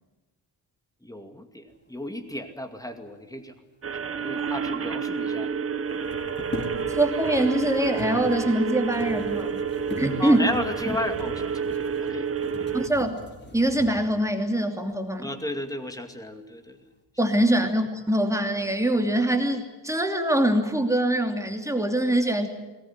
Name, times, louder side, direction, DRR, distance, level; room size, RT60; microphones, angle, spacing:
voice 1, 1.0-3.5 3.8-5.5 6.2-6.4 10.2-12.3 12.6-12.7 15.2-16.8, left 1 dB, 10° left, 6 dB, 2.4 m, -34 dB
sound 1, 3.8-12.9, right 6 dB, 35° right, 1.0 m, -29 dB
sound 2, 4.4-4.5 4.7-4.8 5.8-14.2 14.9-15.0 15.5-16.1 16.4-17.0, left 2 dB, 25° left, 4.4 m, -40 dB
voice 2, 6.9-9.6 10.0-10.5 12.7-13.2 13.5-15.3 17.2-22.5, right 1 dB, 5° right, 4 dB, 2.8 m, -23 dB
22.0 x 19.0 x 9.7 m, 1.2 s
wide cardioid pair, 130°, 42 cm